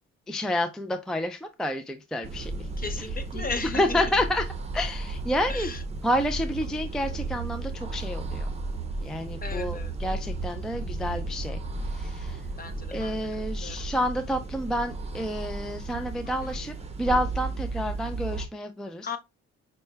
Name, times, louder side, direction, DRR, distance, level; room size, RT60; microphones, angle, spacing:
voice 1, 0.3-2.7 3.3-3.5 3.7-4.4 4.7-5.7 6.0-8.5 9.0-11.6 11.9-12.4 12.9-19.1, left 1 dB, ahead, 0.4 m, -29 dB
sound 1, 2.2-18.5, right 2 dB, 20° right, 0.8 m, -34 dB
voice 2, 2.8-4.0 5.5-5.8 9.4-9.9 12.6-13.2 13.6-13.8 16.4-16.5 19.0-19.2, left 4 dB, 30° left, 0.7 m, -35 dB
5.4 x 2.2 x 3.3 m
cardioid pair, 90°, 30 cm